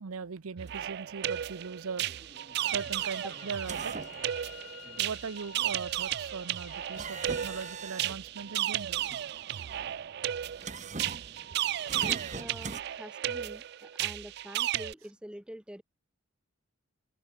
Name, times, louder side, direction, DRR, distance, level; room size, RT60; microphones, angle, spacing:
voice 1, 0.0-2.1 2.6-4.0 5.0-9.1, right 5 dB, 90° right, 0.7 m, -39 dB
sound 1, 0.6-12.8, right 4 dB, 35° right, 1.0 m, -45 dB
sound 2, 0.6-14.9, right 12 dB, 50° right, 0.3 m, -34 dB
sound 3, 2.6-7.7, left 10 dB, 80° left, 1.2 m, -51 dB
voice 2, 12.0-15.8, equal, 5° right, 1.0 m, -46 dB
open air
head